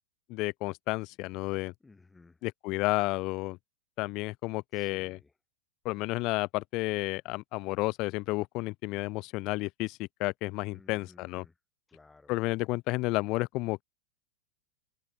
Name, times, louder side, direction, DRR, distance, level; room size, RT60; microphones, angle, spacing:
voice 1, 0.3-1.7 2.4-3.6 4.0-5.2 5.8-11.4 12.3-13.8, left 22 dB, 40° left, 0.5 m, -31 dB
voice 2, 1.8-2.4 4.7-5.3 10.7-11.6 11.9-12.4, left 3 dB, 10° left, 3.9 m, -57 dB
figure-of-eight pair, 90°, 0 cm